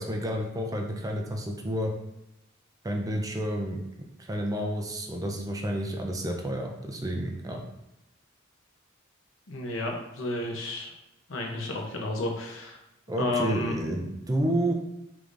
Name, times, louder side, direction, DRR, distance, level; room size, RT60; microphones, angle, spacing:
voice 1, 0.0-1.9 2.8-3.8 4.3-7.6 13.1-14.7, right 1 dB, 20° right, 2 dB, 0.5 m, -30 dB
voice 2, 9.5-10.9 11.3-12.8 13.2-13.7, left 2 dB, 65° left, 1 dB, 0.8 m, -31 dB
4.8 x 3.5 x 2.6 m, 0.88 s
head